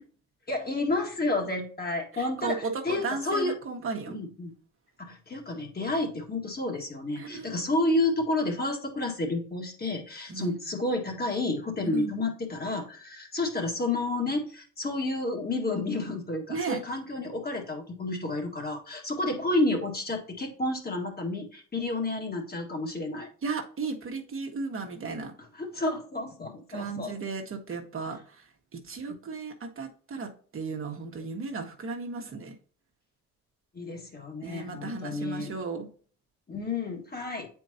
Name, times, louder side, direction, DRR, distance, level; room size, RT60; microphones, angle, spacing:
voice 1, 0.5-3.5 4.1-4.5 5.0-23.3 25.5-27.1 33.7-35.5 36.5-37.5, left 2 dB, 30° left, 1 dB, 1.9 m, -30 dB
voice 2, 2.1-4.2 7.2-7.6 10.3-10.5 11.8-12.1 16.5-16.8 23.4-25.3 26.7-28.5 28.7-32.5 34.4-35.9, right 4 dB, 45° right, 2 dB, 1.3 m, -35 dB
8.1 x 4.6 x 2.8 m, 0.43 s
cardioid pair, 90°, 30 cm